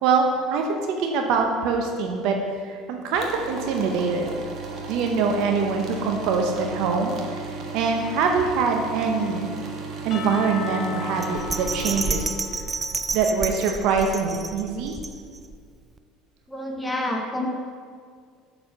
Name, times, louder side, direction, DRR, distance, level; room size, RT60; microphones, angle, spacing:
voice 1, 0.0-2.4 2.6-4.4 4.9-7.4 7.7-9.5 10.0-12.3 13.1-14.9, right 5 dB, 65° right, 3 dB, 0.7 m, -24 dB
sound 1, 3.1-12.0, right 4 dB, 50° right, 1.3 m, -35 dB
Percussion / Church bell, 10.1-14.2, left 7 dB, 45° left, 0.8 m, -38 dB
Bell, 11.2-15.6 16.0-16.1, right 3 dB, 25° right, 0.4 m, -30 dB
voice 2, 16.5-17.5, left 1 dB, 5° left, 1 dB, 1.0 m, -28 dB
7.1 x 4.3 x 6.4 m, 2.1 s
hypercardioid pair, 80°, 0 cm